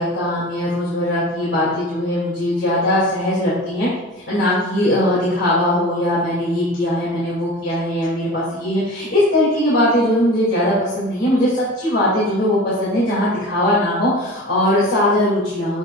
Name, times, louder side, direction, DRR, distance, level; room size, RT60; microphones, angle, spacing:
voice 1, 0.0-3.9 4.3-15.8, left 1 dB, 70° left, -9 dB, 2.8 m, -19 dB
10.5 x 7.5 x 2.5 m, 1.1 s
head